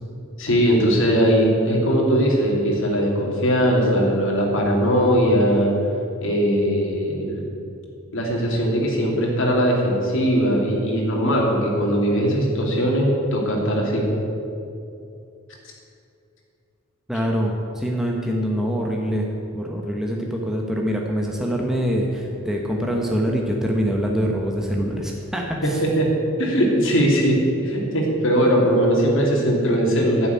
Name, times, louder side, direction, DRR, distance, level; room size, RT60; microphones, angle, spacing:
voice 1, 0.4-5.7 6.2-7.4 8.1-14.0 25.6-25.7 26.0-26.1 26.4-27.4 27.6-30.3, equal, 65° left, -1 dB, 2.9 m, -20 dB
voice 2, 17.1-19.3 19.5-25.8, equal, ahead, -1 dB, 1.0 m, -24 dB
11.5 x 7.0 x 9.7 m, 2.6 s
head